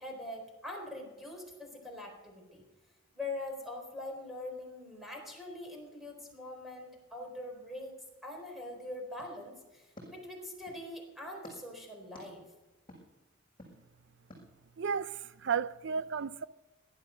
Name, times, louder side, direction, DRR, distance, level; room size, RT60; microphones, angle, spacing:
voice 1, 0.0-2.6 3.1-7.9 8.2-12.4, left 2 dB, ahead, 4.1 m, -43 dB
sound 1, 9.2-10.9 11.4-11.6 12.1-12.3 12.9-13.0 13.6-13.7 14.3-14.4, left 1 dB, 25° left, 6.3 m, -53 dB
voice 2, 14.8-16.5, right 6 dB, 60° right, 0.5 m, -33 dB
18.0 x 11.5 x 6.4 m
head